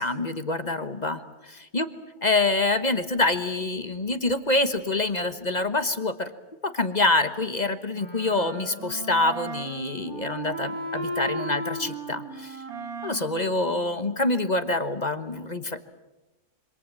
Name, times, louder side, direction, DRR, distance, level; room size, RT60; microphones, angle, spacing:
voice 1, 0.0-1.9 2.2-6.3 6.6-12.6 13.0-15.8, left 2 dB, 30° left, 9 dB, 1.2 m, -26 dB
Wind instrument woodwind instrument, 7.9-14.5, right 2 dB, 70° right, 3.7 m, -36 dB
26.5 x 25.5 x 7.5 m, 1.0 s
omnidirectional pair, 1.6 m